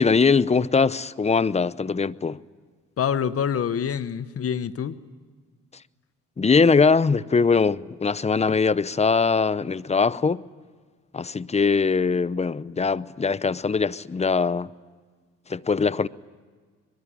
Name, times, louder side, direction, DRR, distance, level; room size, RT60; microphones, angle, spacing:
voice 1, 0.0-2.4 6.4-10.4 11.1-14.7 15.5-16.1, left 5 dB, 20° left, 0.7 m, -21 dB
voice 2, 3.0-5.0, left 8 dB, 50° left, 1.1 m, -26 dB
22.5 x 22.5 x 9.9 m
cardioid pair, 90°, 30 cm